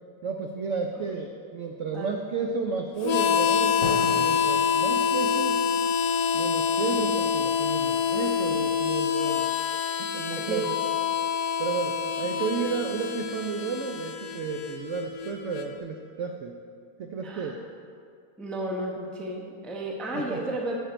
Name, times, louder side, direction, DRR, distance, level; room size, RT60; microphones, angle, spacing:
voice 1, 0.2-5.6 6.3-9.5 9.8-10.8 11.6-16.5 17.0-17.6 20.1-20.4, right 5 dB, 80° right, 3 dB, 0.6 m, -32 dB
Harmonica, 3.0-15.7, left 7 dB, 75° left, 1.3 m, -26 dB
Drum, 3.8-7.5, left 2 dB, 45° left, 1.3 m, -38 dB
voice 2, 17.2-17.6 18.4-20.8, right 1 dB, ahead, -1 dB, 0.3 m, -33 dB
8.9 x 7.3 x 4.4 m, 2.3 s
omnidirectional pair, 1.9 m